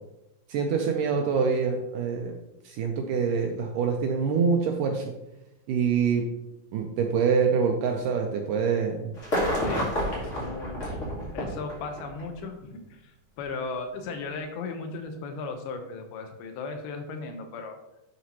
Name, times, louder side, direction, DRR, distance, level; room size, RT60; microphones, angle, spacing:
voice 1, 0.5-2.3 2.6-5.1 5.7-6.2 6.7-9.1, right 6 dB, 85° right, 3 dB, 1.9 m, -25 dB
sound 1, 9.2-12.3 13.4-13.5, equal, 40° left, 1.1 m, -29 dB
voice 2, 9.6-11.0 11.3-17.8, left 4 dB, 90° left, 5 dB, 2.8 m, -37 dB
11.5 x 4.1 x 2.9 m, 0.91 s
omnidirectional pair, 4.3 m